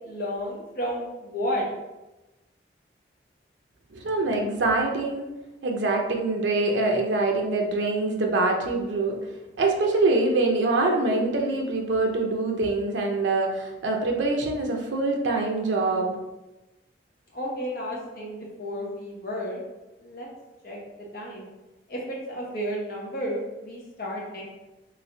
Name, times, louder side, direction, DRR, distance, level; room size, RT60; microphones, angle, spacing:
voice 1, 0.0-1.6 17.3-19.6 20.0-20.3 20.6-21.5 21.9-24.5, equal, 55° left, -3 dB, 0.9 m, -32 dB
voice 2, 3.9-5.3 5.6-9.2 9.6-16.2, right 2 dB, 90° right, 1 dB, 0.6 m, -24 dB
3.1 x 3.0 x 2.6 m, 1.0 s
head